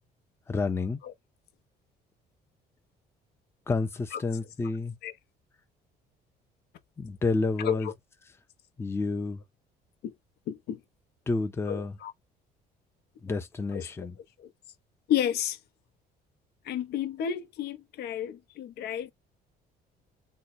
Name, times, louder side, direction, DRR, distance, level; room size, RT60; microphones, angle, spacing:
voice 1, 0.5-1.0 3.7-5.0 7.0-7.9 8.8-9.4 11.3-12.0 13.2-14.1, left 3 dB, 15° left, 0.5 m, -29 dB
voice 2, 7.6-7.9 10.0-10.1 10.5-10.8 11.7-12.1 13.7-13.9 14.4-14.5 15.1-15.6 16.6-19.1, left 10 dB, 75° left, 0.7 m, -31 dB
2.9 x 2.2 x 4.0 m
cardioid pair, 110°, 17 cm